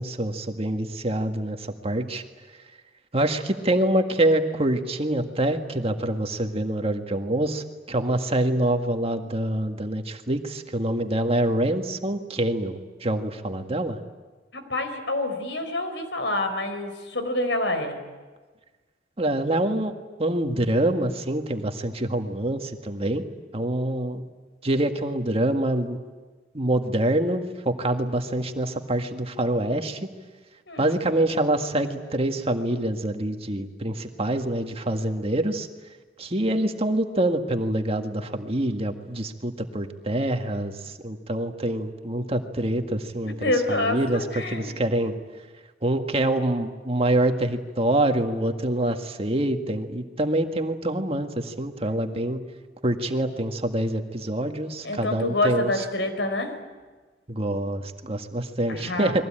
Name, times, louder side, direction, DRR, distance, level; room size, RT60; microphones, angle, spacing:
voice 1, 0.0-2.2 3.1-14.0 19.2-19.9 20.2-23.2 23.5-24.2 24.6-26.0 26.5-30.0 30.8-35.7 36.2-43.3 43.7-45.1 45.8-52.4 52.8-55.8 57.3-59.2, right 1 dB, 35° right, 5 dB, 1.8 m, -25 dB
voice 2, 14.5-18.0 30.7-31.0 43.2-44.7 54.8-56.6 58.7-59.1, left 2 dB, 85° left, 8 dB, 4.7 m, -27 dB
30.0 x 22.0 x 8.9 m, 1.3 s
head